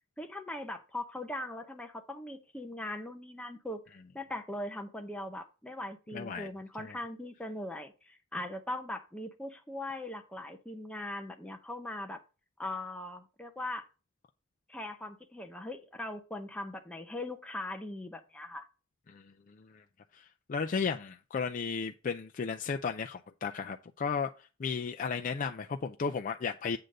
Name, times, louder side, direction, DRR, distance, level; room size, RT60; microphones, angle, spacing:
voice 1, 0.2-12.2 12.6-13.9 14.7-18.7, left 1 dB, 5° left, 0.7 m, -40 dB
voice 2, 6.1-6.5 6.8-6.9 19.1-19.2 19.6-19.8 20.1-20.2 20.5-26.8, left 5 dB, 40° left, 0.4 m, -34 dB
7.8 x 3.8 x 6.4 m
head